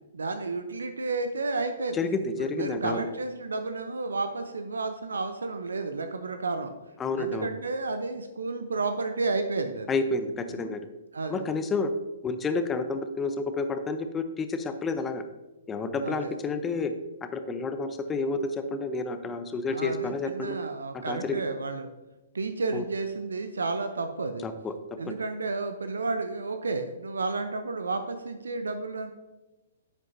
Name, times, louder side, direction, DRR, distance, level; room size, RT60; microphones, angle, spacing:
voice 1, 0.1-2.1 2.5-6.7 7.2-9.9 10.5-10.7 11.1-11.4 16.0-16.3 19.7-21.9 22.3-24.4 25.0-29.1, right 3 dB, 75° right, 8 dB, 0.7 m, -31 dB
voice 2, 1.9-3.1 7.0-7.5 9.9-10.9 11.3-11.9 12.2-15.2 15.7-16.9 17.3-20.6 20.9-21.4 22.7-22.8 24.4-24.7 25.0-25.2, left 3 dB, 15° left, 9 dB, 0.7 m, -30 dB
10.5 x 8.0 x 2.7 m, 1.1 s
figure-of-eight pair, 120°, 0 cm